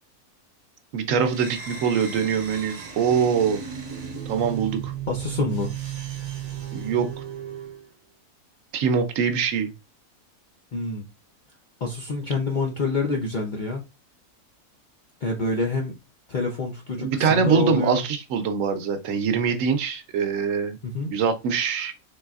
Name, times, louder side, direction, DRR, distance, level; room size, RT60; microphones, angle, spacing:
voice 1, 0.9-3.6 4.3-4.9 6.7-7.1 8.7-9.7 17.0-20.8 21.1-21.9, right 6 dB, 70° right, 1.0 m, -23 dB
sound 1, 1.2-7.8, right 8 dB, 40° right, 0.7 m, -35 dB
voice 2, 5.1-5.7 10.7-11.1 11.8-13.8 15.2-16.0 16.3-18.0 20.8-21.1, left 3 dB, 55° left, 0.5 m, -27 dB
3.9 x 3.3 x 2.3 m
omnidirectional pair, 1.5 m